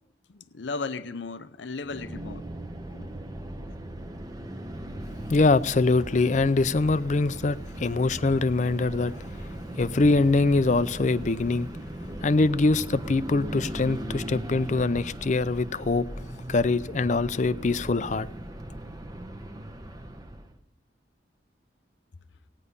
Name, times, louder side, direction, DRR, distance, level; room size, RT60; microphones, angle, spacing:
voice 1, 0.5-2.4 2.9-3.1, left 4 dB, 80° left, 0.7 m, -35 dB
sound 1, 1.8-20.6, right 1 dB, 20° right, 0.8 m, -38 dB
voice 2, 5.3-9.1 9.8-11.7 12.2-16.1 16.5-18.3, left 3 dB, 40° left, 0.5 m, -23 dB
17.5 x 9.9 x 5.3 m
head